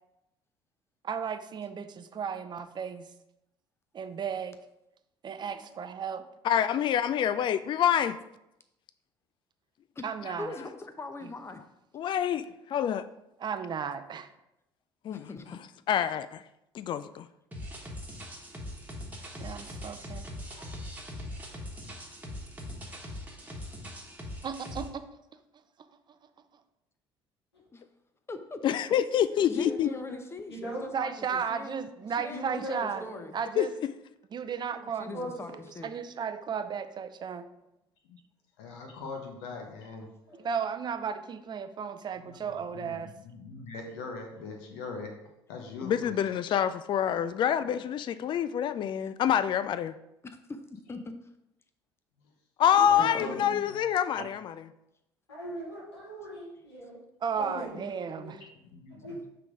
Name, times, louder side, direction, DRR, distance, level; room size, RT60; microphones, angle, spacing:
voice 1, 1.0-3.0 3.9-4.6 5.2-6.2 10.0-10.5 13.4-14.3 19.4-20.2 24.4-24.9 30.9-33.0 33.3-33.7 34.3-35.3 35.8-37.5 40.4-43.1 54.2-54.3 57.2-58.4, right 7 dB, 35° right, 0.6 m, -34 dB
voice 2, 5.4-5.8 20.5-20.6 29.6-30.0 30.5-30.9 32.3-33.2 34.7-34.8 35.1-35.6 40.3-40.5 52.7-53.6 55.3-57.0 57.4-57.8 58.2-58.3 59.0-59.2, equal, 85° left, 2.0 m, -40 dB
voice 3, 6.4-8.2 11.9-13.0 15.0-15.2 15.9-16.4 16.7-17.3 28.6-29.9 33.6-33.9 45.8-50.0 52.6-54.5, left 9 dB, 40° left, 0.3 m, -26 dB
voice 4, 10.4-11.6 15.1-15.6 27.7-27.8 28.3-28.6 29.5-31.8 32.2-33.4 35.0-35.9 50.9-51.1 53.0-53.5, left 3 dB, 20° left, 0.7 m, -41 dB
sound 1, 17.5-24.9, left 1 dB, 10° right, 1.4 m, -41 dB
voice 5, 38.6-40.1 42.2-45.1 45.5-46.2 47.1-47.2 52.2-52.3 52.8-53.8 54.2-54.3 58.6-59.2, left 4 dB, 70° left, 0.9 m, -42 dB
5.7 x 3.8 x 4.8 m
figure-of-eight pair, 60°, 13 cm